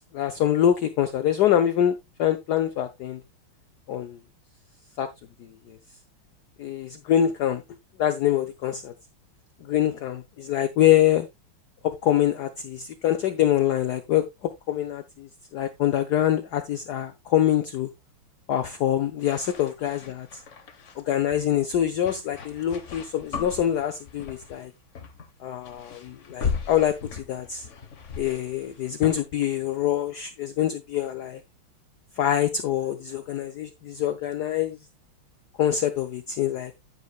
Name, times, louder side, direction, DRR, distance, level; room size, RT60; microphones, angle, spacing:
voice 1, 0.1-3.2 3.9-4.2 5.0-5.1 5.4-5.8 6.6-7.6 8.0-8.9 9.6-11.3 11.8-17.9 18.5-20.4 21.0-24.7 25.4-27.7 28.2-31.4 32.2-34.8 35.6-36.7, left 11 dB, 65° left, 1.1 m, -25 dB
sound 1, 19.2-21.0 21.9-24.7 24.9-25.3 25.6-29.2, left 6 dB, 45° left, 1.2 m, -36 dB
9.7 x 9.5 x 2.3 m
omnidirectional pair, 2.3 m